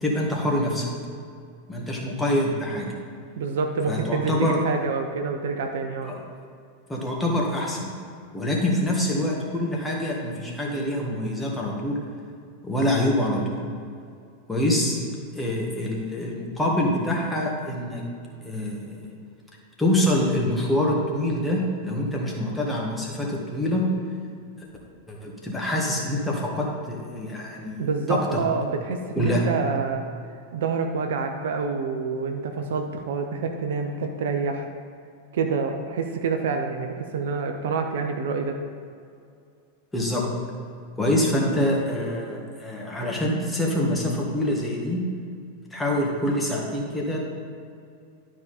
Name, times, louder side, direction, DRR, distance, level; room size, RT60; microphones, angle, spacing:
voice 1, 0.0-0.9 1.7-2.9 3.9-4.6 6.0-6.1 6.9-7.9 8.3-12.0 12.6-13.6 14.5-15.0 15.3-18.0 18.4-19.0 19.8-23.9 25.1-28.4 29.2-29.4 39.9-40.3 41.0-45.0 45.7-47.2, left 1 dB, 5° left, -2 dB, 1.8 m, -25 dB
voice 2, 3.4-6.1 27.8-30.0 30.5-34.6 35.3-38.6, right 5 dB, 60° right, 4 dB, 0.7 m, -27 dB
12.0 x 5.0 x 4.2 m, 2.4 s
figure-of-eight pair, 90°, 0 cm